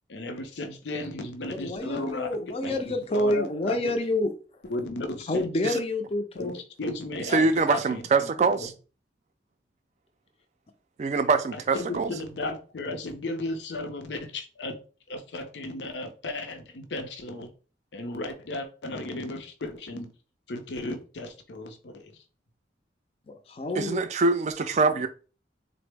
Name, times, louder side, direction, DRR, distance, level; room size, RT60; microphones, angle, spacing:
voice 1, 0.1-4.0 4.7-5.5 6.4-8.7 11.5-14.8 15.1-17.5 17.9-20.1 20.5-22.1, left 2 dB, 80° left, 0.6 m, -35 dB
voice 2, 1.5-4.3 5.3-6.6 23.3-24.0, left 1 dB, 35° left, 0.4 m, -28 dB
voice 3, 7.3-8.7 11.0-12.1 23.8-25.1, right 4 dB, 40° right, 0.3 m, -24 dB
3.8 x 2.0 x 3.3 m
head